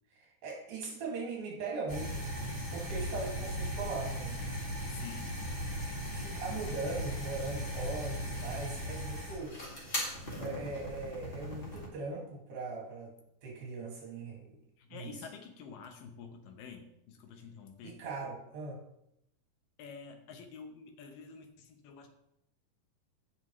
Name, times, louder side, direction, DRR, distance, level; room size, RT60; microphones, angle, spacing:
voice 1, 0.1-2.3 2.7-4.4 6.1-9.6 10.4-13.1 13.4-14.6 14.9-15.1 17.8-18.8, right 3 dB, 70° right, -2 dB, 3.9 m, -40 dB
sound 1, 1.9-11.9, equal, 20° left, 1.8 m, -38 dB
voice 2, 4.9-5.4 14.8-18.0 19.8-22.1, left 5 dB, 75° left, 5 dB, 2.6 m, -48 dB
16.5 x 6.0 x 3.2 m, 0.78 s
omnidirectional pair, 4.3 m